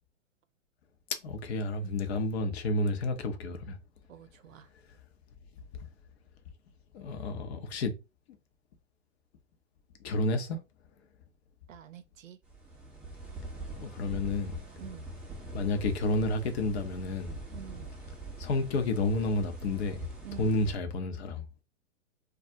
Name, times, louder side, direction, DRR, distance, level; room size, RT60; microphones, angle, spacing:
voice 1, 1.2-3.8 6.9-8.0 10.0-10.6 13.8-14.6 15.5-17.4 18.4-20.1 20.4-21.4, left 2 dB, 50° left, 0.7 m, -30 dB
voice 2, 4.1-4.7 11.7-12.4 14.8-15.1 17.5-17.9 20.2-20.5, right 11 dB, 75° right, 0.6 m, -47 dB
sound 1, 12.4-20.7, right 2 dB, 5° right, 0.4 m, -43 dB
2.3 x 2.1 x 2.6 m
figure-of-eight pair, 110°, 40 cm